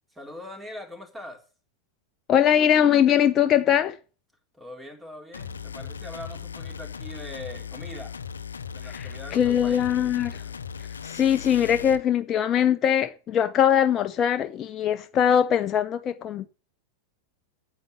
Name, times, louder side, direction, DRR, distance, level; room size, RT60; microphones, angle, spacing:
voice 1, 0.1-1.4 4.5-8.2 8.7-10.0, left 1 dB, 10° right, 3.8 m, -42 dB
voice 2, 2.3-4.0 8.9-10.4 11.0-16.5, left 9 dB, 30° left, 0.8 m, -22 dB
sound 1, 5.3-12.0, left 6 dB, 70° left, 0.7 m, -38 dB
9.3 x 8.5 x 8.0 m
figure-of-eight pair, 90°, 0 cm